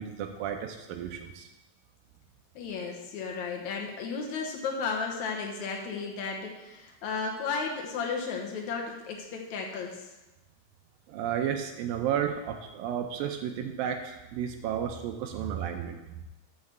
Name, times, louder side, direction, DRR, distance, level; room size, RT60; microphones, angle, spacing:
voice 1, 0.0-1.5 11.1-16.0, right 9 dB, 80° right, 5 dB, 2.1 m, -32 dB
voice 2, 2.6-10.1, left 5 dB, 75° left, 0 dB, 1.7 m, -34 dB
6.4 x 5.9 x 6.5 m, 1.0 s
omnidirectional pair, 4.6 m